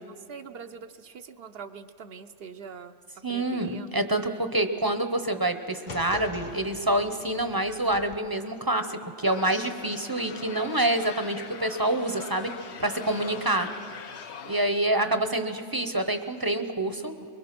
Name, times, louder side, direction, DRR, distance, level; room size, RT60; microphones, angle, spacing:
voice 1, 0.1-2.9 3.3-4.0 4.2-4.4 13.3-13.9 14.9-15.5, right 5 dB, 65° right, 9 dB, 0.9 m, -44 dB
voice 2, 3.2-12.5 12.8-13.7 14.5-17.1, right 1 dB, 20° right, 8 dB, 0.8 m, -27 dB
sound 1, 5.9-8.2, left 3 dB, 45° left, 1.2 m, -43 dB
sound 2, 9.3-14.7, left 6 dB, 80° left, 1.1 m, -42 dB
23.5 x 22.0 x 6.0 m, 2.5 s
omnidirectional pair, 1.1 m